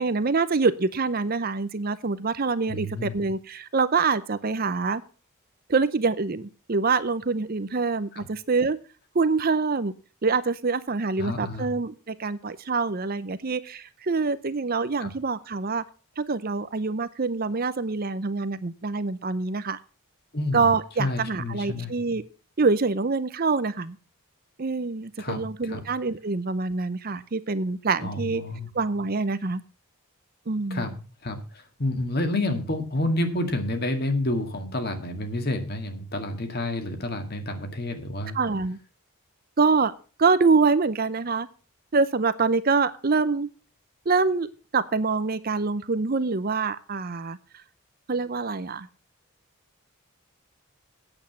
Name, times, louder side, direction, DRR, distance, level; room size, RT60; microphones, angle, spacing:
voice 1, 0.0-5.0 5.7-8.8 9.1-9.9 10.2-15.8 16.2-19.8 20.5-22.2 22.6-24.0 24.6-28.4 28.7-29.6 30.5-30.8 38.3-38.8 39.6-39.9 40.2-41.5 41.9-43.5 44.1-44.5 44.7-47.4 48.1-48.9, right 4 dB, 40° right, 14 dB, 0.6 m, -25 dB
voice 2, 2.7-3.2 8.1-8.3 11.2-11.7 15.0-15.1 20.3-20.7 21.0-21.9 25.2-25.9 28.0-28.7 30.7-38.4, left 1 dB, 45° left, 6 dB, 2.0 m, -29 dB
8.8 x 8.0 x 7.2 m, 0.37 s
head